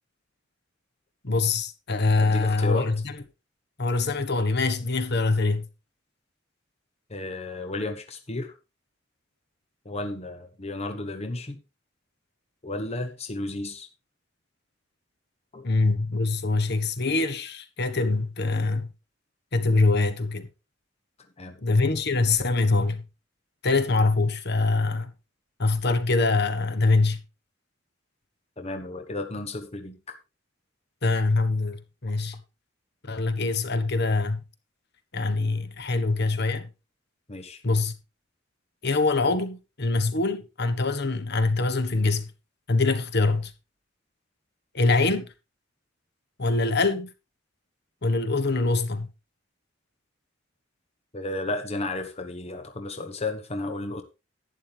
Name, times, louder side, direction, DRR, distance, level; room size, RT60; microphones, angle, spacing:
voice 1, 1.2-3.1 3.8-5.7 15.6-18.9 19.5-20.5 21.6-23.0 23.6-25.1 25.6-27.2 31.0-32.4 33.1-34.4 35.1-36.7 37.6-37.9 38.8-42.3 42.7-43.5 44.7-45.3 46.4-47.1 48.0-49.1, left 3 dB, 60° left, 1.3 m, -24 dB
voice 2, 2.2-2.9 7.1-8.5 9.8-11.6 12.6-13.9 15.5-15.7 21.4-21.6 28.6-30.2 37.3-37.6 51.1-54.0, left 2 dB, 35° left, 1.1 m, -33 dB
11.5 x 9.8 x 3.5 m
head